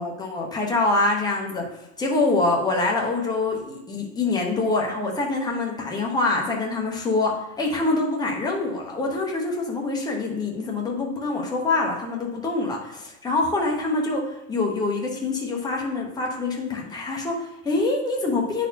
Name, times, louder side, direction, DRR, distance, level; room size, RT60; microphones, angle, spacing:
voice 1, 0.0-1.7 2.0-18.7, left 3 dB, 10° left, -1 dB, 0.8 m, -25 dB
9.6 x 4.2 x 2.8 m, 0.87 s
supercardioid pair, 145°, 45 cm